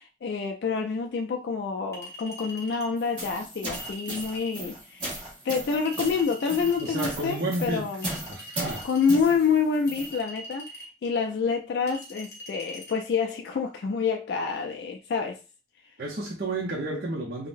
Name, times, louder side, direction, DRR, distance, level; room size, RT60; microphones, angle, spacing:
voice 1, 0.0-5.2 5.4-8.1 8.8-15.4, left 5 dB, 65° left, 0.3 m, -27 dB
Chink clink, 1.9-2.9 3.7-4.6 5.9-7.1 8.0-9.2 9.9-10.9 11.9-12.9, equal, 15° left, 0.8 m, -43 dB
sound 1, 3.0-10.2, right 1 dB, 25° right, 1.2 m, -37 dB
voice 2, 6.8-7.9 8.3-8.8 16.0-17.5, right 2 dB, 55° right, 0.6 m, -31 dB
3.7 x 2.1 x 2.5 m
head